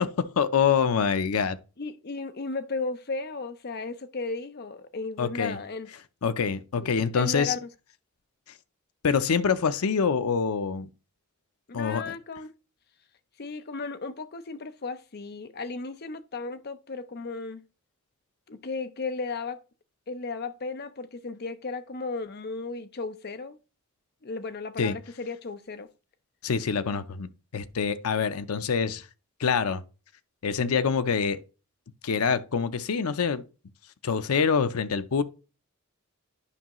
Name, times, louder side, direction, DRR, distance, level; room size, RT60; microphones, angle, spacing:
voice 1, 0.0-1.6 5.2-5.6 6.2-7.5 9.0-10.9 11.7-12.1 24.8-25.0 26.4-29.1 29.4-29.8 30.4-31.4 32.0-33.4 34.0-35.2, left 6 dB, 90° left, 0.6 m, -25 dB
voice 2, 1.8-5.9 6.8-7.7 11.7-12.5 13.4-17.6 18.5-19.6 20.1-23.6 24.2-25.9, left 3 dB, 45° left, 0.6 m, -35 dB
9.8 x 5.5 x 3.0 m
head